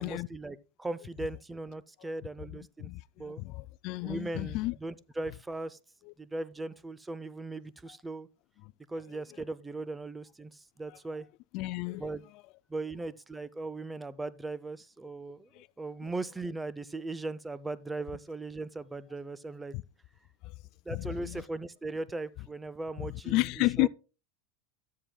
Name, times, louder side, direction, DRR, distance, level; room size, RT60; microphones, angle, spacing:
voice 1, 0.0-2.9 3.2-3.4 4.0-5.8 6.2-8.3 8.9-11.3 12.0-12.2 12.7-15.5 15.8-19.8 20.9-23.5 23.8-23.9, right 2 dB, 10° right, 0.5 m, -38 dB
voice 2, 2.8-4.8 6.1-6.2 11.5-12.1 15.5-15.7 19.7-19.8 20.4-20.5 20.9-21.4 23.0-23.9, left 21 dB, 55° left, 0.3 m, -32 dB
13.5 x 7.5 x 2.3 m
hypercardioid pair, 105°, 0 cm